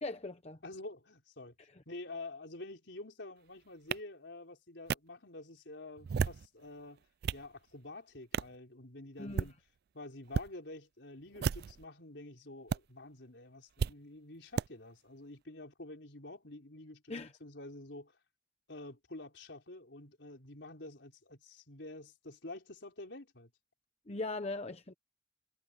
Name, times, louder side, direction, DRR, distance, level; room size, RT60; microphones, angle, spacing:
voice 1, 0.0-0.6 1.6-1.8 9.2-9.5 17.1-17.3 24.1-24.9, left 2 dB, 35° left, 1.0 m, -40 dB
voice 2, 0.6-1.5 1.9-7.0 7.3-9.6 9.9-17.1 17.4-18.1 18.7-23.5, left 2 dB, 80° left, 4.3 m, -48 dB
sound 1, 3.9-4.0 4.9-5.0 6.0-6.5 7.0-7.5 8.3-8.6 9.2-9.5 10.3-10.5 11.3-11.8 12.7-12.8 13.8-13.9 14.6-14.7, right 6 dB, 60° right, 0.4 m, -33 dB
head